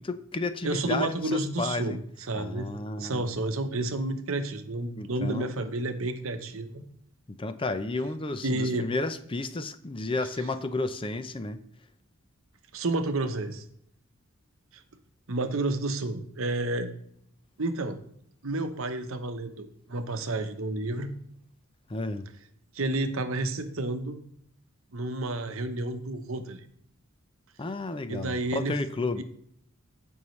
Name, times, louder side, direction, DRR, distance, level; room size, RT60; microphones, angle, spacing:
voice 1, 0.0-2.0 2.3-3.3 4.9-5.5 7.4-11.6 21.9-22.3 27.6-29.2, left 2 dB, 25° left, 11 dB, 0.5 m, -32 dB
voice 2, 0.6-2.0 2.3-2.7 3.0-6.8 8.4-8.9 12.7-13.6 14.7-14.8 15.3-16.9 17.6-18.0 18.4-21.1 22.7-24.2 24.9-26.6 28.1-28.8 29.2-29.3, right 2 dB, 65° right, 8 dB, 1.0 m, -30 dB
16.0 x 5.5 x 3.2 m, 0.67 s
head